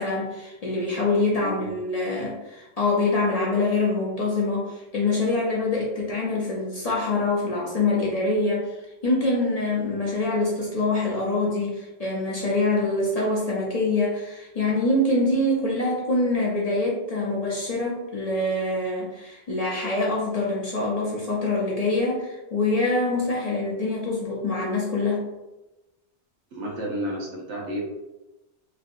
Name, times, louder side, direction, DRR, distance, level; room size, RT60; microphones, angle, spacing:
voice 1, 0.0-25.3, left 2 dB, 45° left, -5 dB, 0.5 m, -25 dB
voice 2, 26.5-27.8, equal, 85° right, -2 dB, 1.1 m, -31 dB
3.2 x 2.7 x 2.5 m, 1.0 s
omnidirectional pair, 1.2 m